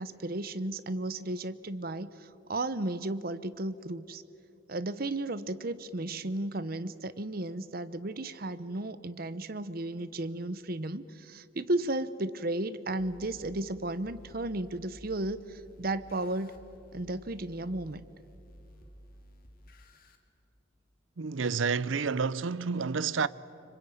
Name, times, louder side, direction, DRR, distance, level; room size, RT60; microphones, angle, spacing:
voice 1, 0.0-4.2 4.7-16.5 16.9-18.0, right 2 dB, 50° right, 0.9 m, -34 dB
sound 1, 13.0-20.2, equal, 50° left, 2.4 m, -54 dB
voice 2, 21.2-23.3, right 5 dB, 90° right, 0.6 m, -29 dB
26.0 x 25.0 x 9.2 m
head